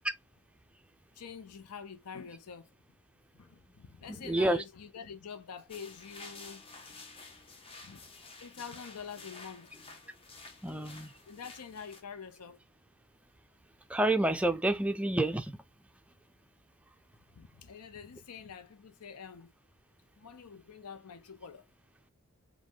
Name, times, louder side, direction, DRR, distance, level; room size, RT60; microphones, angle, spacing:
voice 1, 1.1-2.7 3.3-6.6 7.8-8.0 8.4-9.8 11.3-12.6 17.3-19.5 20.2-21.7, left 6 dB, 85° left, 0.6 m, -46 dB
voice 2, 4.3-4.6 10.6-11.1 13.9-15.6, right 1 dB, 5° right, 0.4 m, -28 dB
sound 1, 5.7-12.0, left 3 dB, 25° left, 0.8 m, -51 dB
5.1 x 2.2 x 3.6 m
head